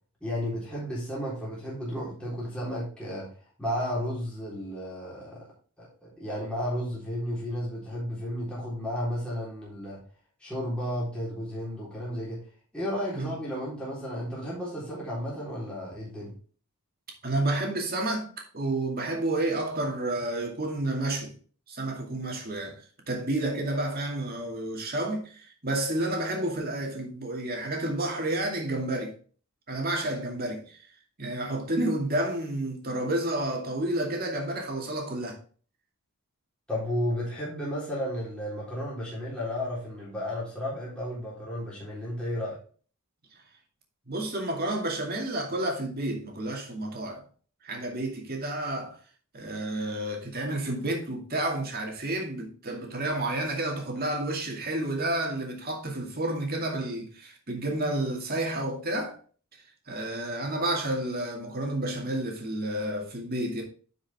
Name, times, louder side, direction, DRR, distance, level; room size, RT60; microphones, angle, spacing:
voice 1, 0.2-3.3 3.6-5.5 5.8-10.0 10.4-12.4 12.7-16.3 36.7-42.6, equal, 5° left, 3.7 m, -33 dB
voice 2, 17.2-21.3 21.7-22.8 23.1-29.1 29.7-30.8 31.2-35.4 44.1-47.2 47.6-49.0 49.3-59.2 59.9-63.6, right 1 dB, 45° right, 2.3 m, -30 dB
10.5 x 5.5 x 3.5 m
head